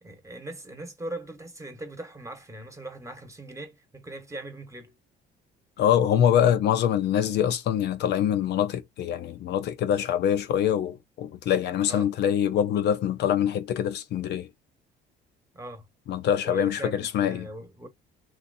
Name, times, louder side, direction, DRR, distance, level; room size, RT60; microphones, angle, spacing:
voice 1, 0.0-4.9 11.9-12.2 15.5-15.9 16.4-17.9, right 1 dB, 15° right, 1.1 m, -40 dB
voice 2, 5.8-14.5 16.1-17.5, left 9 dB, 65° left, 0.5 m, -24 dB
3.1 x 2.8 x 2.6 m
cardioid pair, 90°, 19 cm